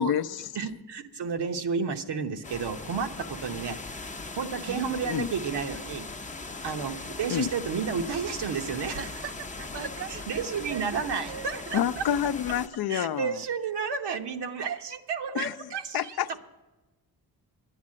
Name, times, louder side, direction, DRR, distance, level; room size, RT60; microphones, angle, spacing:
voice 1, 0.0-0.5 5.1-5.3 7.3-7.5 11.7-13.4 15.3-15.5 15.9-16.4, left 9 dB, 65° left, 0.5 m, -28 dB
voice 2, 0.5-3.8 4.4-6.1 6.6-9.0 10.1-12.0 12.9-16.2, right 6 dB, 80° right, 0.9 m, -31 dB
sound 1, 2.4-12.7, left 3 dB, 20° left, 0.5 m, -39 dB
voice 3, 4.7-5.0 9.0-11.8 14.1-14.3, right 7 dB, 35° right, 0.5 m, -41 dB
10.0 x 9.7 x 7.4 m
cardioid pair, 95°, 40 cm